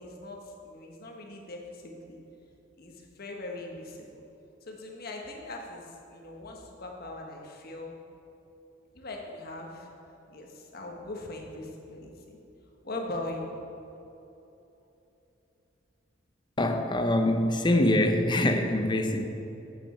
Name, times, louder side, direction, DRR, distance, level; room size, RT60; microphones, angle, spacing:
voice 1, 0.0-2.2 2.8-4.2 4.6-7.9 8.9-9.9 10.3-12.4 12.8-13.5, left 2 dB, 50° left, 1 dB, 1.3 m, -40 dB
voice 2, 16.6-19.3, left 1 dB, 25° left, 5 dB, 0.7 m, -24 dB
8.1 x 7.4 x 5.7 m, 3.0 s
head